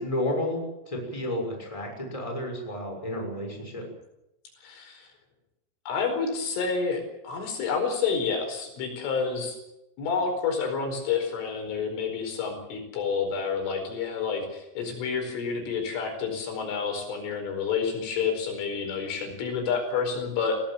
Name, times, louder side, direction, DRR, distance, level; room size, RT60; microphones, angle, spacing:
voice 1, 0.0-3.8, left 1 dB, 5° left, 2 dB, 5.9 m, -31 dB
voice 2, 4.6-5.1 5.9-9.6 10.0-20.6, left 5 dB, 85° left, 5 dB, 7.2 m, -29 dB
23.5 x 17.5 x 7.5 m, 0.87 s
omnidirectional pair, 5.5 m